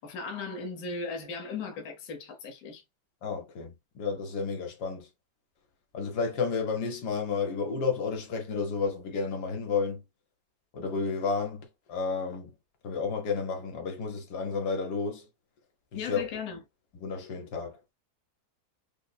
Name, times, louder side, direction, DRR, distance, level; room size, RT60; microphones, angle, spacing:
voice 1, 0.0-2.8 15.9-16.6, left 4 dB, 65° left, 1.4 m, -37 dB
voice 2, 3.2-5.1 5.9-10.0 10.7-12.5 12.8-15.3 15.9-16.3 16.9-17.8, left 5 dB, 85° left, 1.5 m, -31 dB
5.4 x 2.0 x 2.2 m
omnidirectional pair, 1.7 m